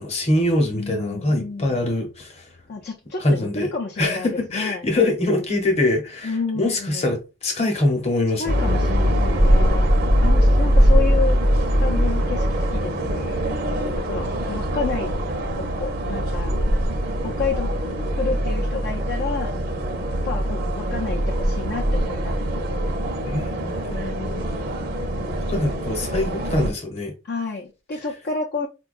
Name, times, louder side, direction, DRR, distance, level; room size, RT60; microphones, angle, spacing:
voice 1, 0.0-2.5 3.2-3.7 4.0-8.5 23.2-23.9 25.5-27.1, left 2 dB, 35° left, 0.8 m, -23 dB
voice 2, 0.7-1.8 2.7-4.9 6.2-7.2 8.4-9.9 10.2-13.4 14.1-15.2 15.6-16.6 17.2-17.7 18.2-19.6 20.2-22.4 23.9-24.8 27.2-28.7, left 4 dB, 55° left, 0.5 m, -30 dB
sound 1, 8.5-26.7, equal, 55° right, 0.7 m, -22 dB
4.5 x 2.2 x 2.4 m
head